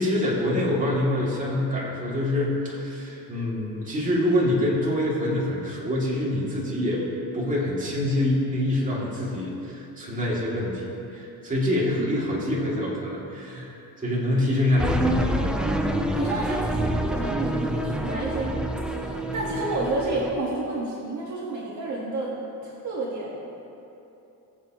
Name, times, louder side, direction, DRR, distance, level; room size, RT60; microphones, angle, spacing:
voice 1, 0.0-7.0 7.3-15.3, left 1 dB, 20° right, -6 dB, 2.7 m, -26 dB
sound 1, 14.8-20.3, right 1 dB, ahead, 0.6 m, -27 dB
voice 2, 16.2-18.6 18.9-22.3 22.6-23.4, right 2 dB, 50° right, -5 dB, 1.7 m, -30 dB
21.0 x 7.3 x 3.1 m, 2.9 s
cardioid pair, 140°, 37 cm